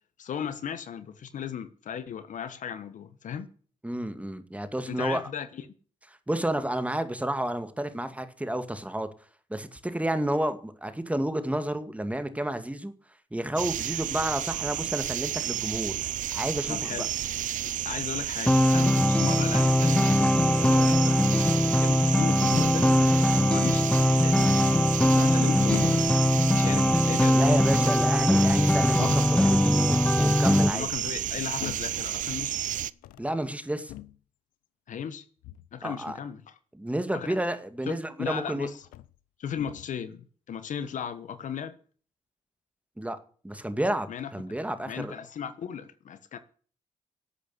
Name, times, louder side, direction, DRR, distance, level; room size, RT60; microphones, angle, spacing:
voice 1, 0.2-3.5 4.9-5.7 16.7-17.1 17.8-21.5 21.8-22.9 23.3-26.1 26.5-27.6 30.7-32.6 34.9-35.2 35.7-36.5 37.1-37.4 37.9-38.8 39.4-41.8 44.1-44.3 44.8-46.4, left 8 dB, 65° left, 1.3 m, -36 dB
voice 2, 3.8-5.2 6.3-9.1 9.5-12.9 13.3-16.0 16.3-17.1 27.3-30.9 33.2-33.9 35.8-36.2 36.8-38.7 43.0-43.2 43.4-45.1, right 1 dB, 10° right, 2.0 m, -31 dB
sound 1, 13.6-32.9, right 12 dB, 70° right, 0.5 m, -31 dB
sound 2, 18.5-30.7, left 1 dB, 5° left, 0.6 m, -22 dB
sound 3, 23.0-23.5 25.0-25.4 25.7-26.2 27.3-27.9 29.0-29.4 30.2-30.7 31.6-32.0 32.9-33.3 33.9-34.2 35.4-35.7 37.9-38.0 38.8-39.2 39.5-39.9, left 15 dB, 90° left, 0.5 m, -41 dB
12.0 x 8.5 x 8.3 m
supercardioid pair, 55°, 14 cm